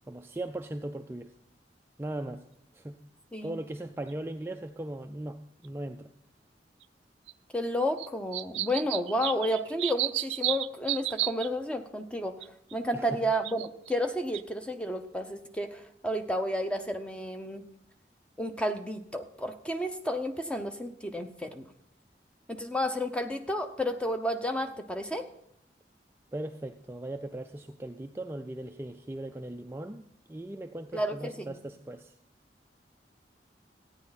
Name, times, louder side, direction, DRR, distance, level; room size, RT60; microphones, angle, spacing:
voice 1, 0.1-1.3 2.0-2.4 2.7-3.0 3.4-6.1 12.9-13.2 26.3-30.0 30.3-32.1, right 1 dB, 15° right, 5 dB, 0.4 m, -38 dB
sound 1, 4.1-4.2 5.6-5.7 6.8-6.9 7.3-7.4 8.0-11.5 12.4-12.7 13.3-13.9 14.3-14.4, right 16 dB, 90° right, 0.4 m, -32 dB
voice 2, 7.5-12.3 12.7-17.6 18.4-21.7 22.5-25.3 30.9-31.5, equal, 5° left, 7 dB, 0.8 m, -31 dB
13.5 x 9.6 x 4.1 m, 0.71 s
head